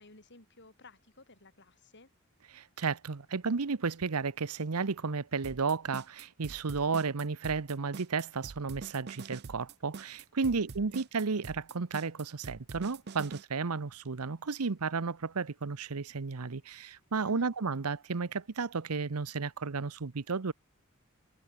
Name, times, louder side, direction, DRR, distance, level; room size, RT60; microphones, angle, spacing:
voice 1, 0.0-2.1 10.4-11.0 17.2-17.5, left 2 dB, 50° left, 4.5 m, -56 dB
voice 2, 2.5-20.5, right 4 dB, 90° right, 0.8 m, -33 dB
sound 1, 5.4-13.4, right 4 dB, 50° right, 0.6 m, -45 dB
head